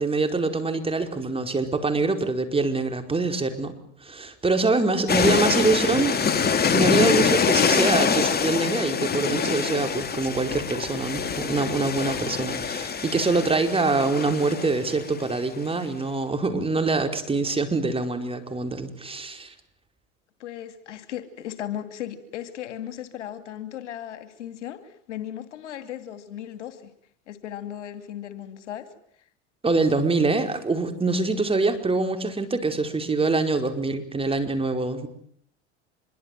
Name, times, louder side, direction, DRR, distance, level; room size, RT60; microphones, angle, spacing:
voice 1, 0.0-3.7 4.0-6.2 6.7-19.5 29.6-35.1, right 3 dB, 15° right, 7 dB, 5.0 m, -24 dB
voice 2, 4.9-5.7 20.4-26.9 27.3-28.9, left 11 dB, 85° left, 11 dB, 2.8 m, -36 dB
sound 1, 5.1-15.3, left 6 dB, 25° left, 2.9 m, -25 dB
26.0 x 23.5 x 9.4 m, 0.66 s
hypercardioid pair, 90°, 35 cm